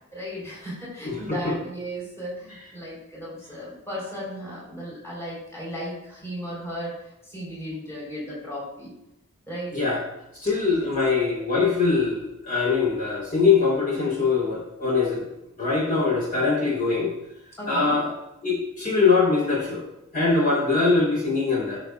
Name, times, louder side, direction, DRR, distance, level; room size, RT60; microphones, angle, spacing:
voice 1, 0.1-8.9 9.5-9.7 10.7-10.9 17.6-18.1, equal, 15° left, -5 dB, 3.9 m, -35 dB
voice 2, 1.0-1.5 9.7-10.0 10.4-15.3 15.6-17.1 17.7-18.1 18.4-19.8 20.1-21.8, left 4 dB, 40° left, -4 dB, 3.4 m, -22 dB
16.5 x 6.9 x 2.4 m, 0.87 s
head